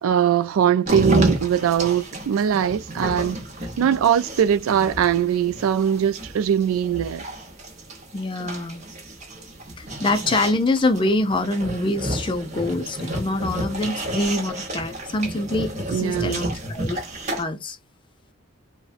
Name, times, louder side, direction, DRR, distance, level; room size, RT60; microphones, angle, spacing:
voice 1, 0.0-3.4 3.8-7.3 15.9-16.5, right 8 dB, 75° right, 0.3 m, -21 dB
sound 1, 0.8-17.4, right 1 dB, 35° right, 0.9 m, -31 dB
voice 2, 8.1-8.9 9.8-17.0 17.4-17.8, left 2 dB, 25° left, 0.4 m, -25 dB
3.8 x 2.2 x 2.4 m
head